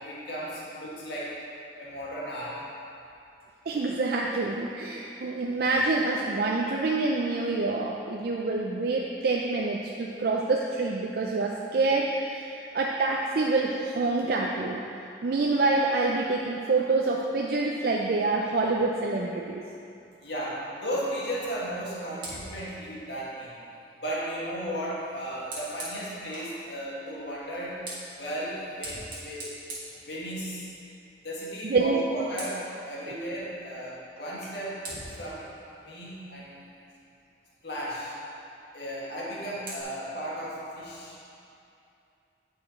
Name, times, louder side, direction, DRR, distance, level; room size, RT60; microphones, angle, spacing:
voice 1, 0.0-1.4 1.8-2.7 20.2-23.5 24.0-27.8 28.2-29.5 30.0-30.7 31.2-34.8 35.2-35.5 35.8-36.5 37.6-38.1 38.7-41.2, equal, 70° left, -6 dB, 1.8 m, -35 dB
voice 2, 3.7-14.8 15.2-19.6 31.6-32.0, right 3 dB, 55° right, -1 dB, 0.4 m, -26 dB
Fire, 22.1-26.6 27.5-30.7 31.1-31.4 31.7-32.8 34.2-34.3 34.8-37.1 39.0-39.8, right 1 dB, 25° right, 1.6 m, -44 dB
9.7 x 4.9 x 4.3 m, 2.6 s
head